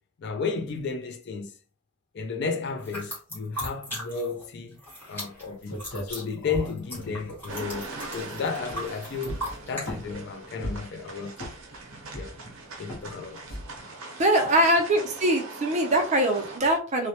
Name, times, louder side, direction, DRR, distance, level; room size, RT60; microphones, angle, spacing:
voice 1, 0.2-1.5 2.1-4.8 5.1-5.8 6.1-11.4 12.1-12.4 12.8-13.5, left 5 dB, 55° left, 0.4 m, -33 dB
sound 1, 2.8-4.5 4.7-9.9, equal, 10° left, 1.0 m, -37 dB
sound 2, 5.4-5.5 5.7-8.3 8.6-8.9 9.2-10.2 10.6-11.0 11.4-11.8 12.1-12.5 12.9-13.1 13.5-13.8, equal, 90° left, 0.9 m, -38 dB
sound 3, 7.5-16.6, right 2 dB, 75° right, 0.7 m, -41 dB
voice 2, 14.2-17.1, right 1 dB, 35° right, 0.5 m, -22 dB
2.1 x 2.1 x 2.8 m
head